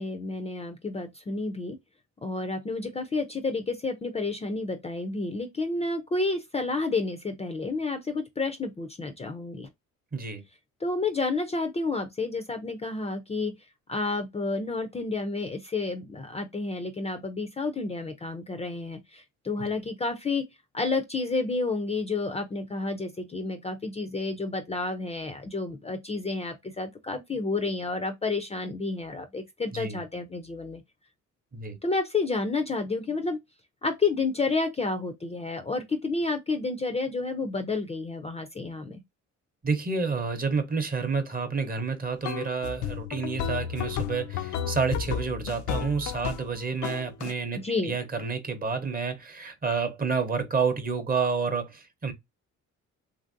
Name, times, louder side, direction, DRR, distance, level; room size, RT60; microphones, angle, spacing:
voice 1, 0.0-1.8 2.2-9.7 10.8-13.5 13.9-20.5 20.7-30.8 31.8-33.4 33.8-39.0 47.5-47.9, left 3 dB, 20° left, 0.4 m, -30 dB
voice 2, 10.1-10.4 19.6-19.7 29.7-30.0 31.5-31.8 39.6-52.1, right 5 dB, 30° right, 0.7 m, -29 dB
sound 1, 42.2-46.5 46.8-47.3, left 9 dB, 75° left, 0.5 m, -32 dB
2.9 x 2.5 x 2.5 m
cardioid pair, 90°, 30 cm